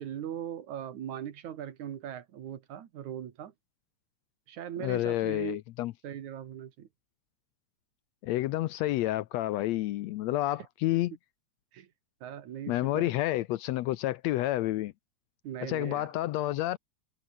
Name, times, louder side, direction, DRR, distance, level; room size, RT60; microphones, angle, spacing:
voice 1, 0.0-3.5 4.5-5.6 6.0-6.9 10.9-11.0 11.7-11.9 12.2-13.1 15.4-16.1, right 10 dB, 80° right, 3.1 m, -39 dB
voice 2, 4.8-5.9 8.2-11.1 12.7-14.9 15.6-16.8, left 15 dB, 75° left, 1.8 m, -29 dB
omnidirectional pair, 3.3 m